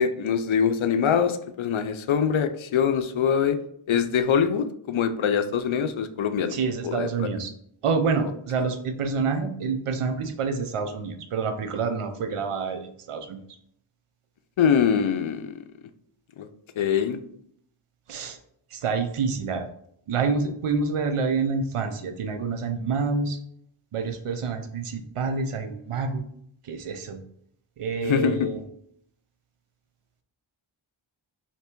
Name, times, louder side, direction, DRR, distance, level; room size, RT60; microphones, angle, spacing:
voice 1, 0.0-3.6 3.9-6.5 6.8-7.3 14.6-15.5 16.4-16.5 16.8-17.2 28.0-28.5, left 7 dB, 70° left, 10 dB, 0.5 m, -23 dB
voice 2, 6.5-7.5 7.8-13.4 18.1-18.4 18.7-19.7 20.1-23.4 23.9-26.2 26.6-27.2 27.8-28.6, right 4 dB, 85° right, 6 dB, 0.7 m, -27 dB
3.3 x 2.9 x 4.4 m, 0.69 s
cardioid pair, 45°, 50 cm